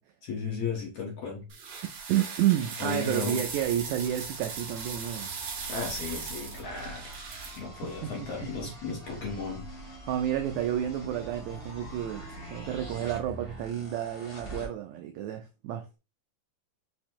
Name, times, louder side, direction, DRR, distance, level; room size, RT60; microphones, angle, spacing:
voice 1, 0.2-1.5 2.8-3.4 5.7-7.2 7.6-9.7, left 4 dB, 65° left, 1.7 m, -35 dB
sound 1, 1.5-7.6, right 5 dB, 65° right, 1.5 m, -39 dB
voice 2, 2.1-5.3 7.8-9.3 10.1-12.3 12.5-15.9, right 11 dB, 90° right, 1.6 m, -31 dB
sound 2, 3.4-14.7, right 1 dB, 30° left, 1.1 m, -45 dB
5.7 x 2.1 x 4.4 m
omnidirectional pair, 3.8 m